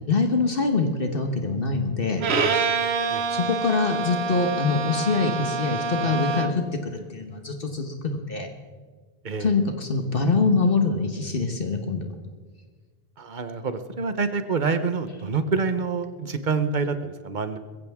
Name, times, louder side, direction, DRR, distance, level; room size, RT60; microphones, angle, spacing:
voice 1, 0.1-2.2 3.3-8.5 9.4-12.1, left 4 dB, 60° left, 4 dB, 1.4 m, -24 dB
Bowed string instrument, 2.2-6.7, right 4 dB, 80° right, 1.2 m, -26 dB
voice 2, 13.2-17.6, right 4 dB, 50° right, 10 dB, 1.1 m, -27 dB
21.5 x 15.0 x 3.6 m, 1.4 s
omnidirectional pair, 1.0 m